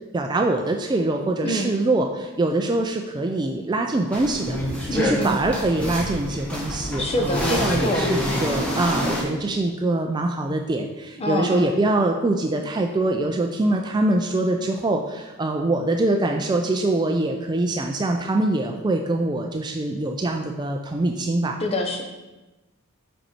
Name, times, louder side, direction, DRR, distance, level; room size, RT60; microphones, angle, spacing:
voice 1, 0.1-4.6 4.9-21.6, right 2 dB, 20° right, 3 dB, 0.3 m, -24 dB
sound 1, 4.1-9.2, equal, 5° left, 1.3 m, -27 dB
voice 2, 4.9-5.4 7.0-8.1 11.2-11.7 21.6-22.0, left 1 dB, 25° left, 2 dB, 0.8 m, -25 dB
5.4 x 5.3 x 4.3 m, 1.1 s
head